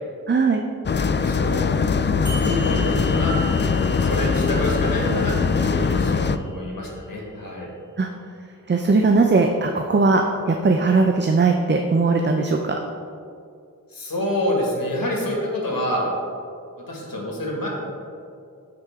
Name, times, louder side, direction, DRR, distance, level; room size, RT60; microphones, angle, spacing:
voice 1, 0.3-0.6 8.0-8.1 8.7-12.8, right 3 dB, 30° right, 3 dB, 0.6 m, -19 dB
voice 2, 0.9-1.7 2.2-7.7 13.9-16.1 16.9-17.7, left 1 dB, 75° left, -2 dB, 2.0 m, -27 dB
sound 1, 0.9-6.4, left 5 dB, 35° left, 0.4 m, -21 dB
sound 2, 2.3-7.3, left 1 dB, 55° right, 1.4 m, -39 dB
12.5 x 4.9 x 3.6 m, 2.4 s
wide cardioid pair, 70°, 35 cm